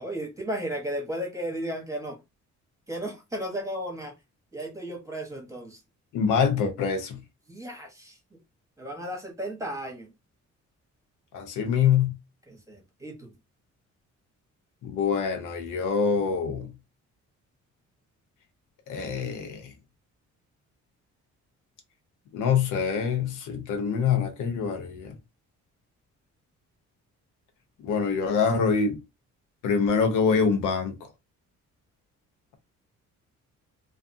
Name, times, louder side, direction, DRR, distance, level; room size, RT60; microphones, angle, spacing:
voice 1, 0.0-2.2 2.9-4.1 4.5-5.8 7.5-8.4 8.8-10.1 12.5-13.3, right 1 dB, 10° right, 1.0 m, -34 dB
voice 2, 6.1-7.2 11.3-12.1 14.8-16.7 18.9-19.7 22.3-25.1 27.8-29.0 29.6-31.0, left 6 dB, 85° left, 0.8 m, -25 dB
2.5 x 2.3 x 2.5 m
cardioid pair, 90°, 30 cm